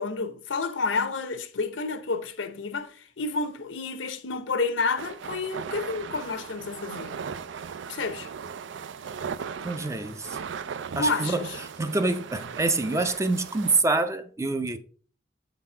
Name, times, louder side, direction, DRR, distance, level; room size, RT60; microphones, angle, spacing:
voice 1, 0.0-7.2 7.9-8.3 11.0-11.6, left 4 dB, 80° left, 0.8 m, -30 dB
sound 1, 5.0-13.8, right 6 dB, 70° right, 0.4 m, -38 dB
voice 2, 9.6-10.3 11.0-11.5 11.8-14.8, right 3 dB, 15° right, 0.5 m, -26 dB
7.3 x 4.1 x 4.3 m
head